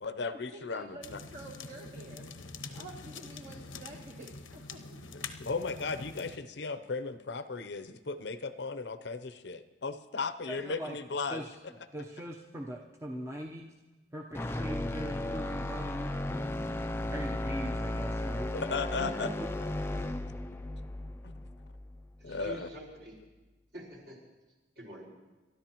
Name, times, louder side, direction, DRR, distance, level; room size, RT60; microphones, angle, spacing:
voice 1, 0.0-1.2 5.1-11.4 18.5-19.3 22.2-22.7, left 4 dB, 60° left, 12 dB, 0.7 m, -36 dB
voice 2, 0.5-5.0, right 1 dB, 45° right, 0 dB, 1.3 m, -49 dB
sound 1, 1.0-6.4, left 4 dB, 90° left, 0.9 m, -45 dB
voice 3, 10.5-11.0 11.3-11.5 11.9-13.7 14.1-16.1 17.0-18.5 19.0-19.5 20.0-20.1, equal, 15° right, 0 dB, 0.8 m, -40 dB
sound 2, 14.3-22.5, left 1 dB, 10° left, 0.4 m, -35 dB
voice 4, 22.2-23.1 23.7-24.2 24.7-25.1, right 1 dB, 60° right, -3 dB, 5.0 m, -46 dB
29.5 x 13.0 x 3.0 m, 1.1 s
head